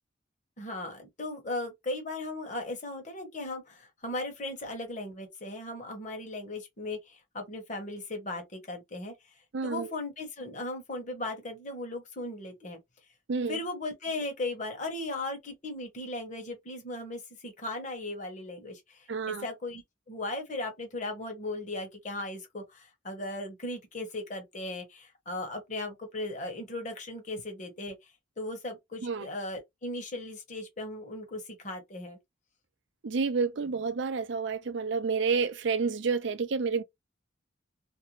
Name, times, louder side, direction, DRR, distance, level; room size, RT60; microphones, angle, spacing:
voice 1, 0.6-9.1 9.6-12.8 13.5-19.8 20.1-28.0 28.4-32.2, left 2 dB, 40° left, 1.0 m, -37 dB
voice 2, 9.5-9.9 13.3-13.6 19.1-19.4 29.0-29.3 33.0-36.8, right 5 dB, 60° right, 0.4 m, -29 dB
2.6 x 2.2 x 2.9 m
head